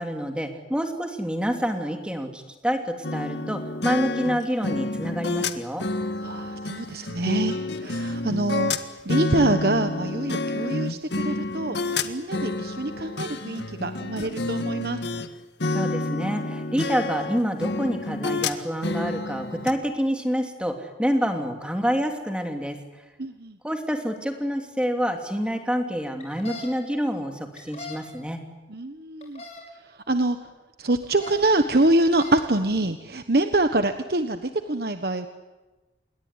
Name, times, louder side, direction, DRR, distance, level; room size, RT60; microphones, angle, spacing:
voice 1, 0.0-5.9 15.7-22.8 23.6-28.4, equal, 5° right, 4 dB, 2.9 m, -27 dB
sound 1, 3.0-15.3 15.6-19.7, left 2 dB, 75° left, 1.7 m, -29 dB
voice 2, 6.2-8.7 9.0-11.8 12.0-15.0 23.2-23.6 28.7-29.4 30.1-30.4 30.8-35.3, right 2 dB, 55° right, 8 dB, 1.3 m, -25 dB
sound 2, 26.2-26.7 27.6-28.0 29.2-29.6 31.0-31.4 32.0-32.4, left 3 dB, 35° left, 6.0 m, -39 dB
28.5 x 21.5 x 9.8 m, 1.2 s
head